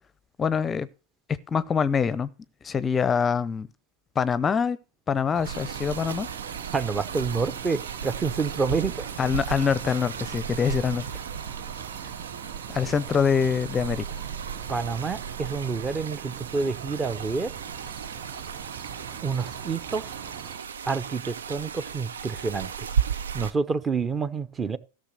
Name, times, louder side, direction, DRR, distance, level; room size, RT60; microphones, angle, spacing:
voice 1, 0.4-0.9 1.3-2.3 2.6-3.7 4.2-4.8 5.1-6.3 9.2-11.1 12.7-14.0, left 6 dB, 20° left, 0.6 m, -24 dB
sound 1, 5.3-20.6, right 10 dB, 50° right, 1.0 m, -42 dB
sound 2, 5.4-23.5, right 7 dB, 80° right, 0.7 m, -35 dB
voice 2, 6.7-9.1 14.7-17.5 19.2-20.2 20.8-22.9 23.3-24.8, right 4 dB, 20° right, 0.8 m, -28 dB
13.5 x 6.5 x 6.5 m
hypercardioid pair, 100°, 0 cm